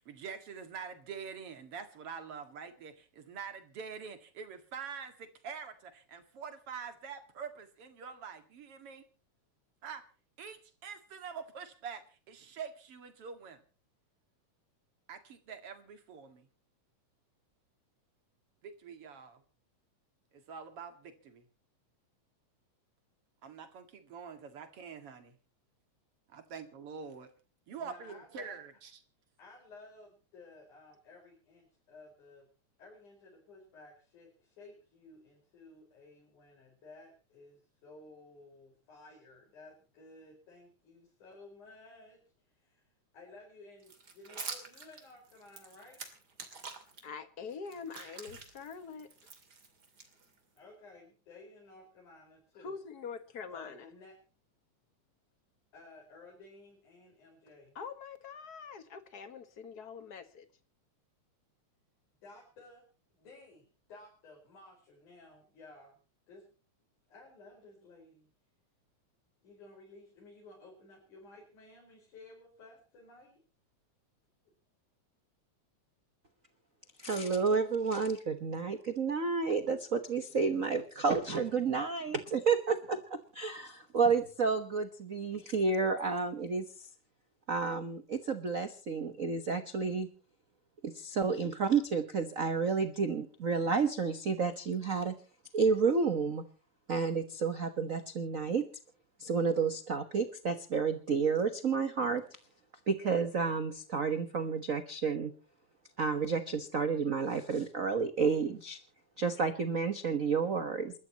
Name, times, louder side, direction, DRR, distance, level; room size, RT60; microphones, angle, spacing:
voice 1, 0.0-9.0 9.8-10.0 10.4-13.6 15.1-16.5 18.6-19.4 20.3-21.5 23.4-25.4 26.3-27.3 27.7-29.0, right 6 dB, 50° right, 2.8 m, -45 dB
voice 2, 27.7-28.6 29.4-32.5 32.8-42.9 43.1-46.1 50.6-52.8 53.5-54.2 55.7-57.8 62.2-62.9 63.2-66.0 66.3-66.5 67.1-68.3 69.4-73.4, left 2 dB, 85° left, 6.2 m, -55 dB
sound 1, 43.8-47.0 47.5-50.6, right 4 dB, 35° right, 2.9 m, -47 dB
voice 3, 47.0-49.1 52.6-53.9 57.7-60.4, left 5 dB, 45° left, 1.3 m, -44 dB
voice 4, 77.0-83.0 83.3-86.6 87.5-90.1 90.8-95.1 95.5-96.4 96.9-98.6 99.2-102.2 102.9-105.3 106.0-108.8 109.2-110.9, right 5 dB, 90° right, 0.7 m, -30 dB
28.5 x 13.0 x 2.9 m
omnidirectional pair, 3.4 m